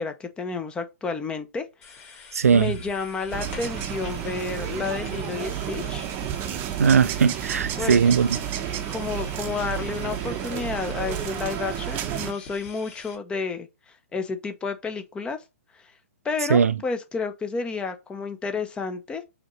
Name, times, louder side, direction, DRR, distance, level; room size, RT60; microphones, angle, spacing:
voice 1, 0.0-6.1 7.8-8.0 8.9-13.7 14.1-15.4 16.2-19.2, left 4 dB, 10° left, 0.6 m, -31 dB
sound 1, 1.8-13.1, left 4 dB, 30° left, 1.8 m, -45 dB
voice 2, 2.3-2.8 6.8-8.4 16.5-16.8, right 6 dB, 85° right, 0.4 m, -19 dB
sound 2, 3.3-12.3, right 11 dB, 25° right, 0.7 m, -31 dB
5.0 x 2.9 x 3.0 m
hypercardioid pair, 130°, 8 cm